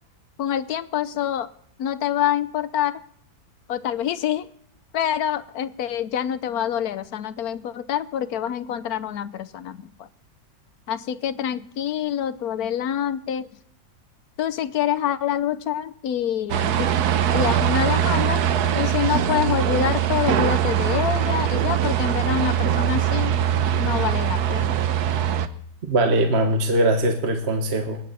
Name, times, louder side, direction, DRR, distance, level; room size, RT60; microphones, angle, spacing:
voice 1, 0.4-1.5 1.8-3.0 3.7-4.5 4.9-10.1 10.9-13.5 14.4-16.9 17.3-18.4 18.7-23.3 23.8-24.8, left 10 dB, 70° left, 14 dB, 1.2 m, -26 dB
sound 1, 16.5-25.5, right 10 dB, 70° right, 1.3 m, -22 dB
voice 2, 25.9-28.0, right 1 dB, 40° right, 4 dB, 1.5 m, -21 dB
27.0 x 9.3 x 4.2 m, 0.68 s
omnidirectional pair, 1.8 m